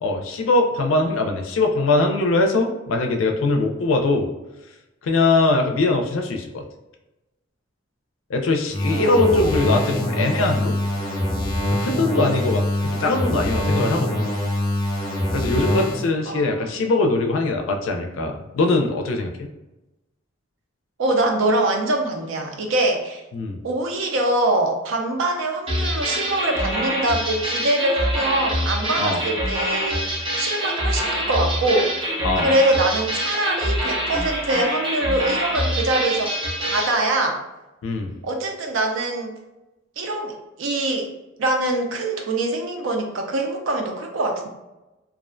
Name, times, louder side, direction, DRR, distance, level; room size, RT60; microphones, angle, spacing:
voice 1, 0.0-4.3 5.0-6.6 8.3-10.7 11.7-14.2 15.3-19.5 23.3-23.6 29.0-29.2 32.2-32.5 37.8-38.1, left 2 dB, 80° left, 3 dB, 0.4 m, -21 dB
sound 1, 8.7-16.1, left 1 dB, 20° left, 0.6 m, -24 dB
voice 2, 9.0-9.5 16.3-16.6 21.0-23.2 23.6-32.0 32.4-36.3 36.6-37.4 38.2-39.3 40.0-41.1 41.4-44.5, right 1 dB, 75° right, 3 dB, 0.4 m, -23 dB
sound 2, 25.7-37.0, equal, 25° right, 0.5 m, -25 dB
2.4 x 2.1 x 2.4 m, 1.0 s
head